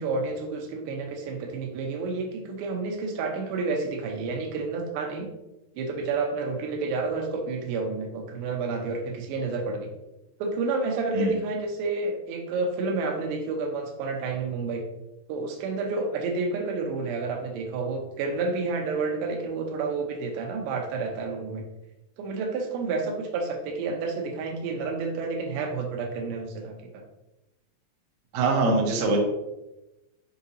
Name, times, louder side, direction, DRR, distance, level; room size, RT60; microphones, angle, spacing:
voice 1, 0.0-5.3 5.8-9.9 10.4-14.9 15.3-21.6 22.2-27.0, right 3 dB, 85° right, 3 dB, 2.9 m, -30 dB
voice 2, 28.3-29.2, right 2 dB, 70° right, -1 dB, 1.8 m, -23 dB
7.1 x 4.8 x 2.8 m, 0.96 s
omnidirectional pair, 4.9 m